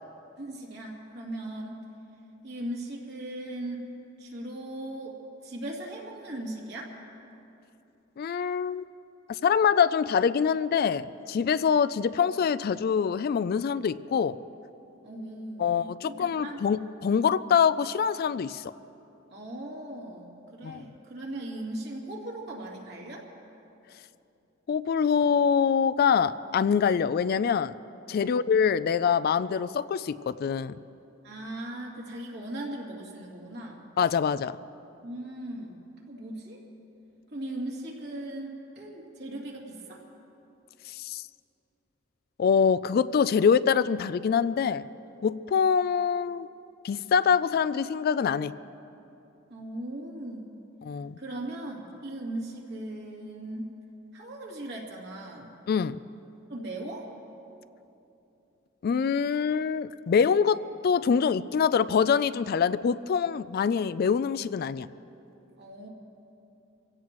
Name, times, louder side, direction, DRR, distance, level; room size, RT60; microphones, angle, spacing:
voice 1, 0.4-1.8 2.4-3.8 4.2-5.2 5.4-6.9 15.0-16.6 19.3-23.3 28.2-28.5 31.2-33.8 35.0-35.8 36.1-36.6 37.3-40.0 49.5-50.5 51.2-53.7 54.1-55.5 56.5-57.1 65.6-65.9, right 1 dB, 55° right, -2 dB, 2.6 m, -38 dB
voice 2, 8.2-8.8 9.4-14.4 15.6-18.7 20.6-20.8 24.7-27.7 28.1-30.8 34.0-34.6 41.0-41.2 42.4-44.8 45.2-46.5 46.8-48.5 50.8-51.1 55.7-56.0 58.8-64.9, left 6 dB, 50° left, 15 dB, 0.3 m, -25 dB
26.0 x 16.5 x 3.1 m, 2.9 s
head